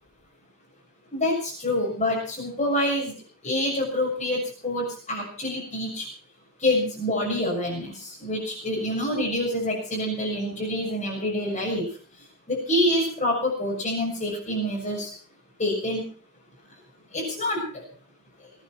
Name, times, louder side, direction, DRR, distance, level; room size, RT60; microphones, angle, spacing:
voice 1, 1.1-3.1 3.4-6.1 6.6-11.8 12.5-15.1 15.6-16.0 17.1-17.8, left 1 dB, 35° left, -4 dB, 6.9 m, -26 dB
22.0 x 10.5 x 6.0 m, 0.42 s
head